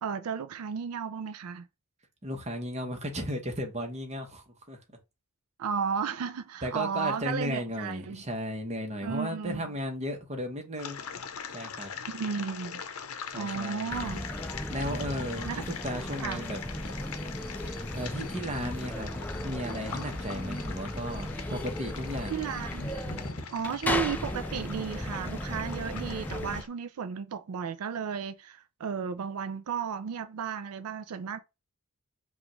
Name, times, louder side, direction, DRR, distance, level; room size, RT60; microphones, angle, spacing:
voice 1, 0.0-1.7 5.6-8.2 9.0-9.7 12.1-12.8 13.3-14.3 15.4-15.6 16.2-16.5 22.3-22.9 23.5-31.4, right 6 dB, 90° right, 0.4 m, -34 dB
voice 2, 2.2-5.0 6.6-11.0 11.5-11.9 13.3-14.0 14.7-16.6 17.9-19.1 19.4-22.4, equal, 30° right, 1.0 m, -35 dB
sound 1, 10.8-26.7, left 6 dB, 75° left, 0.7 m, -42 dB
sound 2, 13.9-26.6, left 1 dB, 10° left, 0.4 m, -36 dB
sound 3, 16.8-24.3, left 1 dB, 45° left, 1.3 m, -47 dB
5.0 x 2.4 x 3.0 m
head